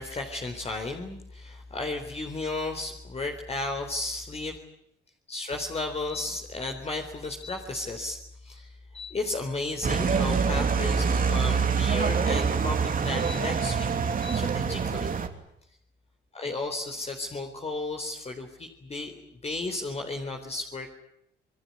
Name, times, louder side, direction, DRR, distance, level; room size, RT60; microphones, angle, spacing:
voice 1, 0.0-4.6 5.3-15.2 16.3-20.9, left 2 dB, 30° left, 3 dB, 4.0 m, -34 dB
sound 1, 9.8-15.3, right 6 dB, 45° right, 3.2 m, -25 dB
27.0 x 21.5 x 9.6 m, 0.76 s
cardioid pair, 90°, 20 cm